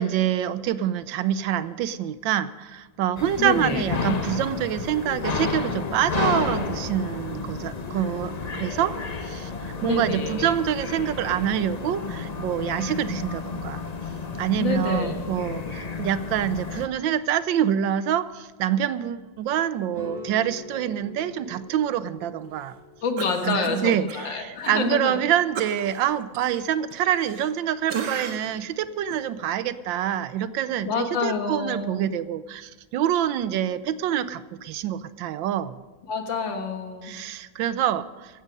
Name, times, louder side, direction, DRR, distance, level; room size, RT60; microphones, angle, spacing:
voice 1, 0.0-8.9 9.2-9.5 9.8-13.8 14.4-22.7 23.4-35.8 37.0-38.4, right 10 dB, 80° right, 15 dB, 1.4 m, -26 dB
sound 1, 3.2-16.9, left 4 dB, 50° left, 0.5 m, -31 dB
voice 2, 3.4-3.8 9.8-10.5 14.6-15.2 23.0-25.2 30.9-32.1 36.1-37.1, left 4 dB, 70° left, 5 dB, 2.2 m, -28 dB
sound 2, 19.9-25.1, left 1 dB, 20° right, 1.6 m, -44 dB
Cough, 23.2-24.2 24.6-24.7 25.5-27.6 27.9-28.6 29.1-29.2, right 6 dB, 65° right, 1.7 m, -35 dB
15.5 x 14.0 x 5.3 m, 1.3 s
omnidirectional pair, 2.1 m